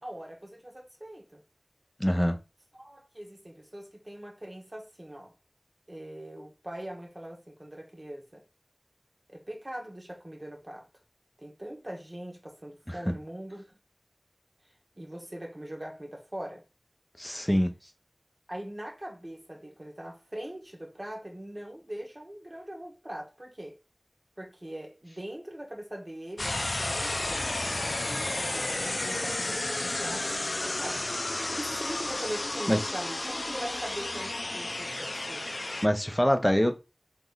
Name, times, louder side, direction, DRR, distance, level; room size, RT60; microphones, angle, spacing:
voice 1, 0.0-1.4 2.7-5.3 5.9-8.4 9.3-10.9 11.4-13.8 14.9-16.6 17.8-17.9 18.5-23.8 24.4-35.5, right 1 dB, 40° right, 1.3 m, -42 dB
voice 2, 2.0-2.4 12.9-13.1 17.2-17.7 31.4-31.5 32.7-32.8 35.8-36.7, equal, 10° left, 0.7 m, -25 dB
sound 1, 26.4-35.9, left 2 dB, 60° left, 0.4 m, -32 dB
3.7 x 3.0 x 3.9 m
wide cardioid pair, 50°, 0 cm